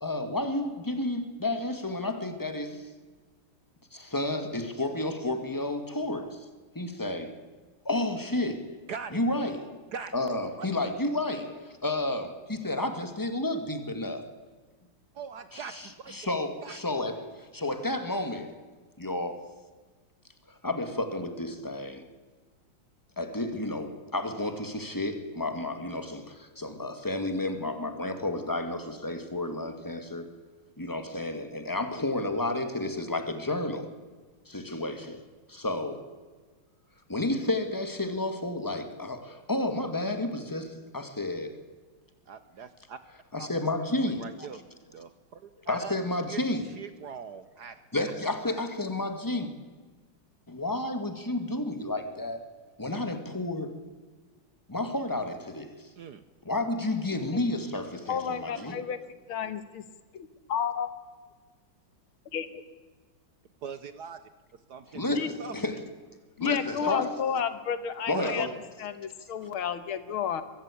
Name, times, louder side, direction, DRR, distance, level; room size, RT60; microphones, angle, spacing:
voice 1, 0.0-2.9 3.9-6.5 6.8-7.4 7.8-8.7 9.1-9.8 10.1-14.2 15.5-18.6 19.0-19.5 20.5-22.1 23.2-30.3 30.8-33.9 34.5-35.2 35.5-36.1 37.1-41.6 43.3-44.3 45.7-46.7 47.9-49.5 50.5-52.4 52.8-53.8 54.7-55.9 56.5-58.8 64.9-65.8 66.4-67.1 68.1-68.5, left 2 dB, 10° left, 7 dB, 1.7 m, -31 dB
voice 2, 8.9-9.2 9.9-10.1 10.6-10.9 15.1-16.1 16.6-16.8 42.3-43.0 43.4-43.6 44.0-44.6 44.9-47.8 56.0-56.2 58.5-58.8 63.6-64.2 64.7-65.1 65.4-65.6 66.4-66.9 68.1-68.4, right 6 dB, 60° right, 12 dB, 1.2 m, -41 dB
voice 3, 58.1-59.0 59.3-59.8 60.1-60.9 62.3-62.5 65.2-65.3 66.4-68.5 68.8-70.4, left 7 dB, 75° left, 12 dB, 2.1 m, -31 dB
23.0 x 14.5 x 8.5 m, 1.4 s
omnidirectional pair, 2.3 m